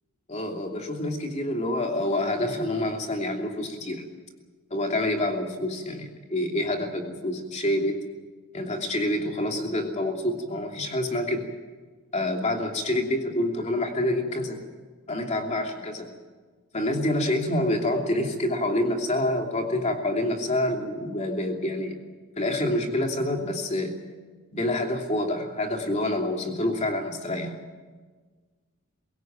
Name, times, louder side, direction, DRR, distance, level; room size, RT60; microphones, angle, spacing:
voice 1, 0.3-4.0 4.7-7.9 8.5-11.4 12.1-14.6 15.1-16.1 16.7-22.0 22.4-23.9 24.5-27.6, left 1 dB, 30° left, 2 dB, 2.9 m, -27 dB
23.5 x 16.5 x 9.0 m, 1.4 s
head